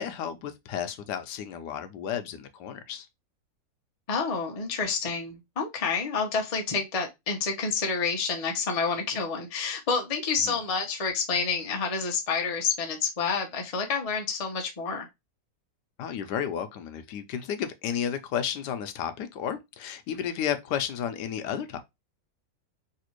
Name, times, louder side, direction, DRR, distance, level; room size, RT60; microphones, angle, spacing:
voice 1, 0.0-3.1 10.4-10.6 16.0-21.8, left 8 dB, 75° left, 1.1 m, -32 dB
voice 2, 4.1-15.1, left 5 dB, 60° left, 0.3 m, -29 dB
3.3 x 2.8 x 2.9 m
omnidirectional pair, 1.9 m